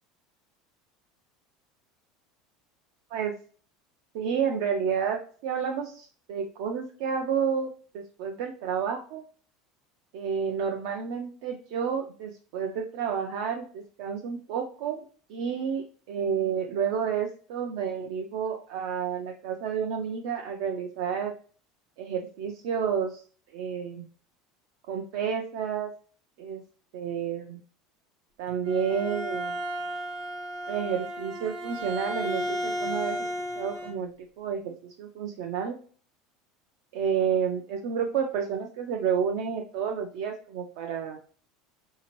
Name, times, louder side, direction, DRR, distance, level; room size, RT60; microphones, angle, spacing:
voice 1, 4.1-9.2 10.1-15.0 15.3-21.3 22.0-23.2 23.5-24.1 24.9-25.9 26.4-26.6 26.9-27.6 28.4-29.6 30.7-33.3 33.6-35.8 36.9-41.2, right 7 dB, 65° right, 2 dB, 0.4 m, -30 dB
Bowed string instrument, 28.5-34.0, equal, 45° right, 1.1 m, -33 dB
4.9 x 2.8 x 3.0 m, 0.44 s
cardioid pair, 165°, 0 cm